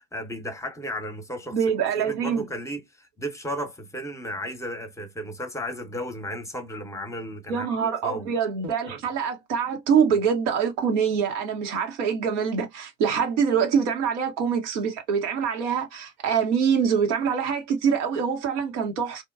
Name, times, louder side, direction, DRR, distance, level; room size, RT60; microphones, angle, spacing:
voice 1, 0.0-1.6 2.0-8.3 8.9-9.0, equal, 10° left, 0.8 m, -34 dB
voice 2, 1.5-2.4 7.5-19.2, right 7 dB, 70° right, 0.8 m, -24 dB
2.9 x 2.1 x 2.3 m
hypercardioid pair, 60°, 38 cm